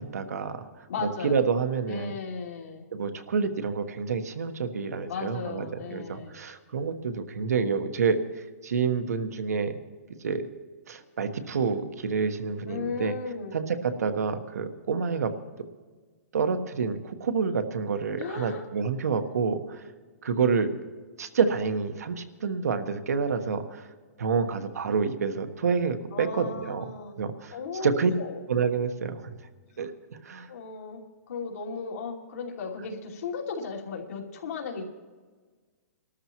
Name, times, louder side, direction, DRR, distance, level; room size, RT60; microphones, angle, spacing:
voice 1, 0.0-0.8 1.2-2.1 2.9-5.7 5.9-9.7 10.2-10.5 10.9-13.1 13.5-15.3 16.3-19.8 20.2-20.7 21.2-23.9 24.2-26.8 27.2-28.1 28.5-29.4 29.8-29.9 30.2-30.5, right 5 dB, 85° right, 7 dB, 1.3 m, -28 dB
voice 2, 0.9-1.4 1.9-2.8 5.1-6.4 12.7-13.6 18.2-18.6 26.1-28.4 30.5-34.8, left 5 dB, 75° left, -2 dB, 2.8 m, -36 dB
24.5 x 13.0 x 3.0 m, 1.4 s
hypercardioid pair, 165°, 8 cm